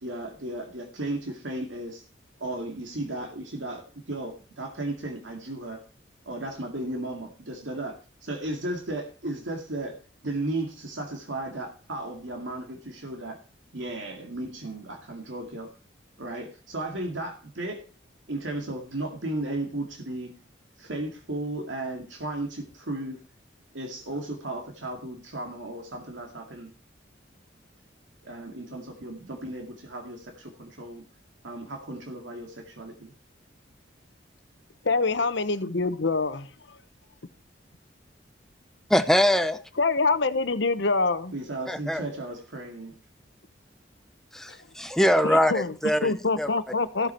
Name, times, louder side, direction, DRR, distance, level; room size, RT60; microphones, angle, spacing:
voice 1, 0.0-2.0 2.4-5.8 6.3-9.9 10.2-13.4 13.7-15.7 16.2-17.8 18.3-20.4 20.8-23.2 23.7-26.7 28.2-31.0 31.4-33.1 41.3-42.9, right 2 dB, 85° right, 2.2 m, -35 dB
voice 2, 34.8-36.8 39.8-41.3 44.5-44.6 45.2-45.7 46.0-47.1, left 3 dB, 75° left, 1.0 m, -25 dB
voice 3, 38.9-39.6 41.7-42.0 44.3-46.5, equal, ahead, 0.7 m, -23 dB
14.5 x 8.0 x 4.4 m
head